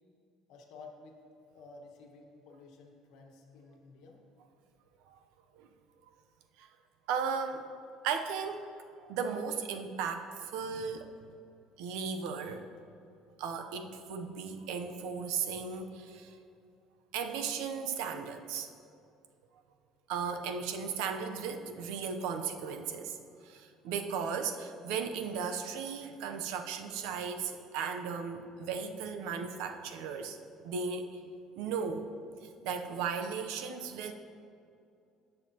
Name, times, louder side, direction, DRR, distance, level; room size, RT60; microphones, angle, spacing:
voice 1, 0.5-1.2 1.5-4.2, left 3 dB, 65° left, 2 dB, 1.3 m, -53 dB
voice 2, 7.1-7.7 8.0-8.7 9.0-11.1 11.8-12.7 13.4-16.4 17.1-18.7 20.1-23.2 23.4-30.4 30.6-31.2 31.6-32.1 32.4-34.1, right 6 dB, 85° right, 7 dB, 0.7 m, -36 dB
16.5 x 6.5 x 2.9 m, 2.5 s
cardioid pair, 170°, 0 cm